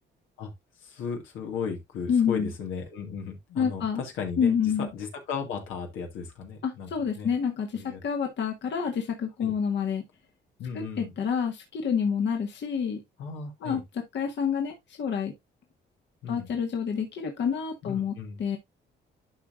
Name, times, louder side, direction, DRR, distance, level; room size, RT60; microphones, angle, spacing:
voice 1, 0.8-4.5 4.8-6.9 7.2-7.3 7.7-8.0 9.4-9.5 10.6-11.1 13.2-13.8 16.2-16.5 17.8-18.4, left 6 dB, 85° left, 2.2 m, -35 dB
voice 2, 2.1-2.5 3.6-4.0 4.4-4.9 6.6-10.0 10.7-13.0 13.6-13.8 14.1-15.3 16.3-18.1 18.4-18.6, left 7 dB, 65° left, 1.7 m, -28 dB
11.5 x 5.0 x 2.6 m
cardioid pair, 90°, 20 cm